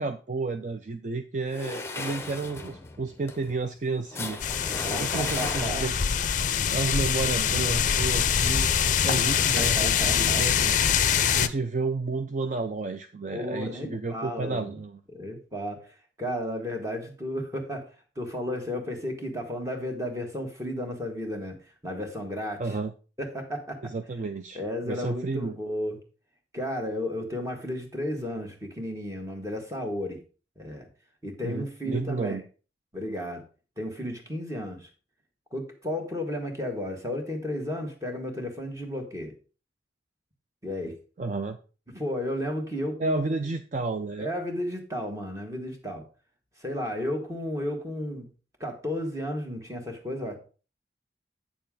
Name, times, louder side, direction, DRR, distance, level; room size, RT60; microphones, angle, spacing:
voice 1, 0.0-4.4 4.7-5.9 6.7-8.7 9.0-10.7 11.4-15.0 22.6-22.9 23.8-24.6 24.8-25.6 31.4-32.4 41.2-41.6 43.0-44.3, right 3 dB, 45° right, 8 dB, 0.4 m, -31 dB
sound 1, 1.5-6.1, left 3 dB, 15° left, 0.8 m, -36 dB
sound 2, 4.4-11.5, left 8 dB, 45° left, 0.5 m, -24 dB
voice 2, 4.8-6.0 9.4-10.7 13.3-14.8 15.1-15.9 16.2-17.9 18.1-22.8 23.2-23.9 24.5-26.0 26.5-30.2 30.6-30.9 31.2-32.4 32.9-33.4 33.8-34.9 35.5-39.3 40.6-40.9 41.9-43.3 44.2-46.0 46.6-48.3 48.6-50.4, left 1 dB, 15° right, 2 dB, 1.6 m, -33 dB
8.7 x 6.8 x 3.7 m, 0.35 s
head